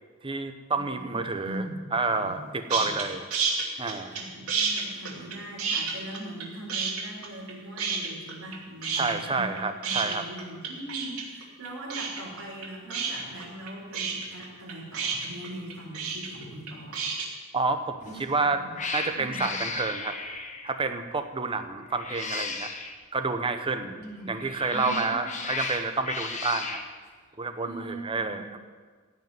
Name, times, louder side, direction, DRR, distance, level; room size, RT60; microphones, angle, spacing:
voice 1, 0.2-1.6 1.9-3.2 3.8-4.2 8.9-10.2 17.5-18.6 18.9-20.2 20.6-22.7 23.1-24.0 24.3-26.8 27.4-28.6, right 3 dB, 25° right, 7 dB, 0.9 m, -29 dB
voice 2, 0.9-3.0 4.1-9.5 9.8-17.0 18.0-18.2 18.5-18.7 19.0-19.4 23.8-24.3 24.7-25.2 25.7-25.8 27.6-28.4, right 1 dB, 65° right, -3 dB, 4.5 m, -41 dB
sound 1, 2.7-3.0 3.3-4.2 4.5-6.4 6.7-7.5 7.8-8.6 8.8-17.3, right 5 dB, 90° right, 2.7 m, -29 dB
Cat, 18.0-18.3 18.7-20.8 21.9-23.0 24.3-26.9, left 4 dB, 35° left, 1.2 m, -35 dB
15.5 x 5.5 x 9.3 m, 1.5 s
head